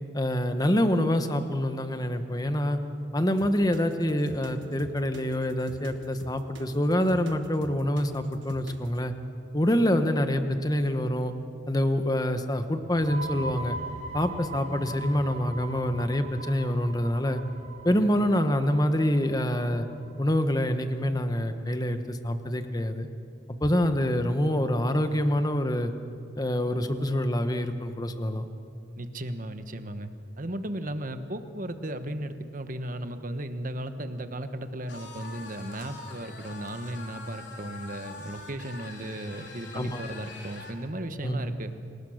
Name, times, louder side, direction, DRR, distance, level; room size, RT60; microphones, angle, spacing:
voice 1, 0.1-2.8 3.1-9.1 9.5-11.3 11.7-13.8 14.1-17.4 17.8-19.9 20.2-23.1 23.6-25.9 26.4-28.5 39.7-40.0 41.2-41.5, left 1 dB, 20° left, 8 dB, 1.2 m, -26 dB
sound 1, 3.4-9.0, right 2 dB, 85° right, 1.4 m, -46 dB
sound 2, 12.8-20.3, right 2 dB, 65° right, 7.3 m, -40 dB
voice 2, 29.0-30.1 30.4-41.7, right 1 dB, 45° right, 9 dB, 1.3 m, -35 dB
sound 3, 34.9-40.8, left 3 dB, 75° left, 3.4 m, -44 dB
28.5 x 19.0 x 6.5 m, 2.4 s
head